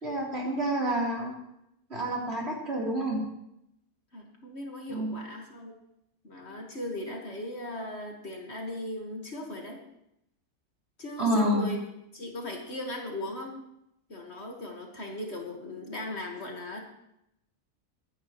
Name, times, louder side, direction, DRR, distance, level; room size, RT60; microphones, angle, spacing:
voice 1, 0.0-1.3 1.9-3.2 4.9-5.2 11.2-11.7, right 1 dB, 40° right, -3 dB, 3.7 m, -28 dB
voice 2, 4.1-5.7 6.2-9.8 11.0-11.8 12.1-13.6 14.1-16.8, left 1 dB, 45° left, 1 dB, 1.9 m, -38 dB
23.5 x 10.0 x 3.1 m, 0.81 s
omnidirectional pair, 1.6 m